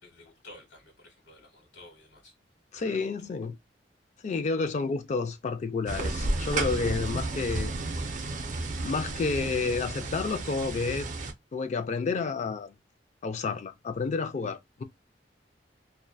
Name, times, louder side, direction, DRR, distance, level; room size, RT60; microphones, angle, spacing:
voice 1, 0.0-2.3 2.7-3.1 7.0-7.1, left 2 dB, 85° left, 1.0 m, -52 dB
voice 2, 2.7-3.6 4.2-7.7 8.8-11.1 11.5-12.7 13.2-14.8, left 4 dB, 40° left, 0.3 m, -30 dB
sound 1, 5.9-11.3, right 2 dB, 45° right, 0.5 m, -32 dB
2.6 x 2.1 x 2.2 m
head